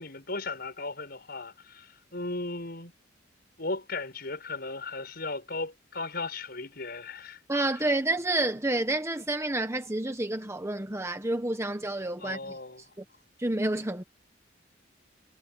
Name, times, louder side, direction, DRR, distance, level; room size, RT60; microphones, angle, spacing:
voice 1, 0.0-2.9 3.6-7.4 12.2-12.8, left 3 dB, 55° left, 7.3 m, -36 dB
voice 2, 7.5-12.6 13.0-13.1 13.4-14.0, right 2 dB, 15° right, 1.2 m, -29 dB
head